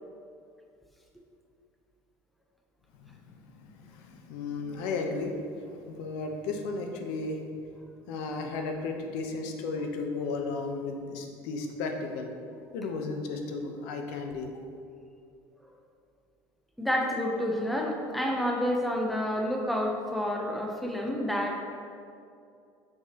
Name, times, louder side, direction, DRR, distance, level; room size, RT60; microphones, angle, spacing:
voice 1, 2.9-7.4 8.1-12.3 12.7-14.5, left 3 dB, 80° left, 3 dB, 0.8 m, -34 dB
voice 2, 16.8-21.7, left 1 dB, ahead, 0 dB, 0.6 m, -29 dB
6.2 x 5.8 x 2.9 m, 2.5 s
cardioid pair, 125°, 8 cm